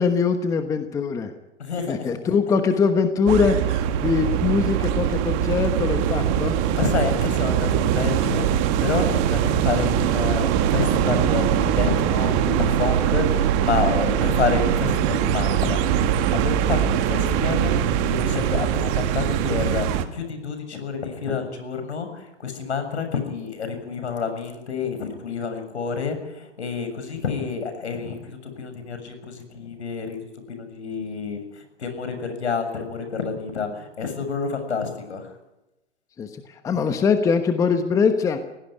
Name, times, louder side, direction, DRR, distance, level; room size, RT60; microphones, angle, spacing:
voice 1, 0.0-1.3 1.9-6.5 36.2-36.3 36.6-38.4, left 5 dB, 10° left, 8 dB, 1.1 m, -22 dB
voice 2, 1.6-2.1 6.7-17.7 18.0-30.2 30.5-35.3, left 5 dB, 70° left, 8 dB, 7.1 m, -29 dB
sound 1, 3.3-20.1, right 9 dB, 30° right, 1.7 m, -22 dB
21.5 x 17.0 x 9.9 m, 0.95 s
hypercardioid pair, 135°, 35 cm